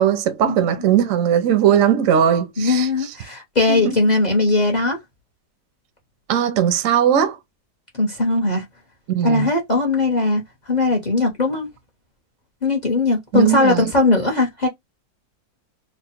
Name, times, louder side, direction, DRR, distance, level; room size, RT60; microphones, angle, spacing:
voice 1, 0.0-3.1 3.7-4.0 6.3-7.4 9.1-9.5 13.3-13.9, right 9 dB, 60° right, 0.9 m, -19 dB
voice 2, 2.6-5.0 8.0-8.6 9.2-11.7 12.6-14.7, left 2 dB, 35° left, 0.7 m, -19 dB
3.1 x 2.1 x 4.2 m
omnidirectional pair, 1.8 m